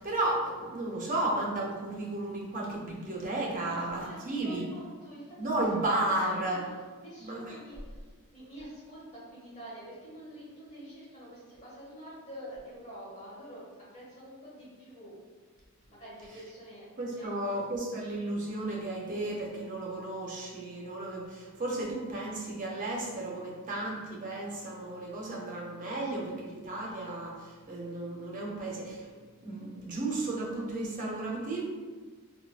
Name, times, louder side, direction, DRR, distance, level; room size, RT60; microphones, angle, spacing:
voice 1, 0.0-4.6 5.4-6.7 7.2-7.5 17.0-29.1 29.4-31.6, right 2 dB, 35° right, -3 dB, 0.6 m, -33 dB
voice 2, 3.7-6.5 7.0-13.6 13.9-15.1 15.9-16.8 17.2-17.6, equal, 30° left, -9 dB, 1.5 m, -47 dB
3.6 x 2.2 x 2.3 m, 1.5 s
head